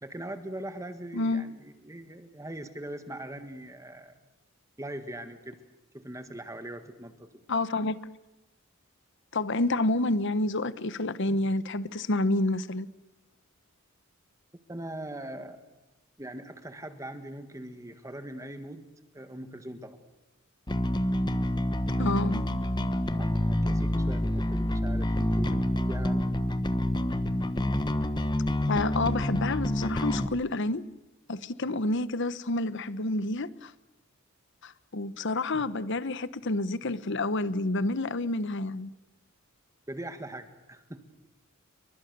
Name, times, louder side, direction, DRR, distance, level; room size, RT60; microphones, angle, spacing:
voice 1, 0.0-4.1 4.8-5.6 5.9-7.3 14.7-15.6 16.2-18.9 19.1-20.0 23.2-26.3 39.9-41.1, right 1 dB, 15° right, 1.6 m, -41 dB
voice 2, 1.1-1.4 7.5-8.0 9.3-12.9 22.0-22.4 28.7-30.8 31.3-33.7 34.6-38.9, left 2 dB, 60° left, 1.0 m, -29 dB
Bass guitar, 20.7-30.3, left 1 dB, 20° left, 1.1 m, -27 dB
29.0 x 23.5 x 6.9 m
head